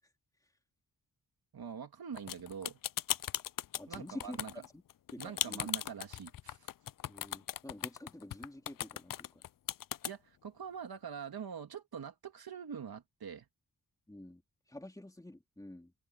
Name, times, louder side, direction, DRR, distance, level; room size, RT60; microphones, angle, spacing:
voice 1, 1.5-2.8 3.9-4.5 5.2-6.7 10.0-13.5, right 7 dB, 70° right, 2.8 m, -44 dB
sound 1, 2.2-10.1, left 12 dB, 60° left, 0.5 m, -37 dB
voice 2, 3.8-4.4 4.7-4.8 5.1-5.7 7.0-9.4 14.1-14.4 14.7-15.9, left 1 dB, 10° left, 3.3 m, -48 dB
open air
cardioid pair, 80°, 38 cm